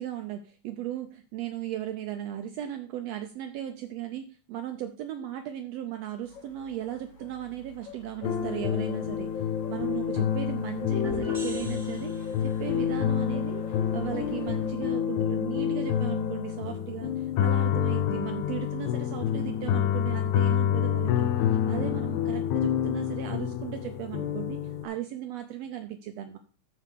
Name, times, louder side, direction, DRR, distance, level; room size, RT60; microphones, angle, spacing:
voice 1, 0.0-26.4, right 12 dB, 75° right, 7 dB, 1.5 m, -37 dB
sound 1, 6.2-14.7, left 4 dB, 70° left, 2.8 m, -50 dB
sound 2, 8.2-24.9, left 9 dB, 90° left, 2.2 m, -28 dB
sound 3, 11.0-12.7, right 3 dB, 10° right, 2.8 m, -42 dB
13.0 x 4.6 x 3.6 m, 0.40 s
omnidirectional pair, 3.4 m